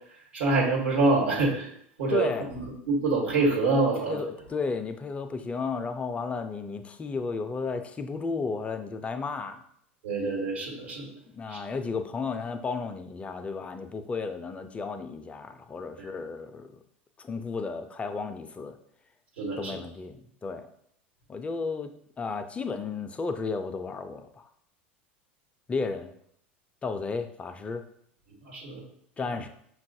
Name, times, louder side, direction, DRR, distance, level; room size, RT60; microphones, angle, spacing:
voice 1, 0.3-1.7 2.0-4.3 10.0-11.2 11.5-11.6 16.0-16.1 19.4-19.8 28.4-28.8, right 3 dB, 80° right, -3 dB, 1.2 m, -26 dB
voice 2, 2.1-2.5 4.1-9.6 11.3-16.8 17.2-18.8 19.6-20.7 21.3-24.5 25.7-26.1 26.8-27.8 29.2-29.5, left 4 dB, 20° left, 8 dB, 0.4 m, -33 dB
5.6 x 2.3 x 2.7 m, 0.67 s
hypercardioid pair, 85°, 6 cm